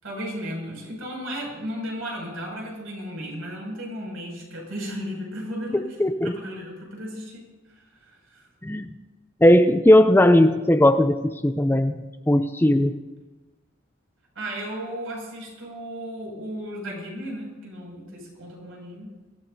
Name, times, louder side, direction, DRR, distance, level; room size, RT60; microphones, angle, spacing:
voice 1, 0.0-5.9 6.2-7.4 7.8-8.5 14.3-19.1, equal, 75° right, -2 dB, 6.3 m, -35 dB
voice 2, 6.0-6.3 8.6-8.9 9.4-11.9 12.3-12.9, left 1 dB, 10° left, 9 dB, 0.4 m, -17 dB
24.0 x 15.0 x 2.7 m, 1.2 s
head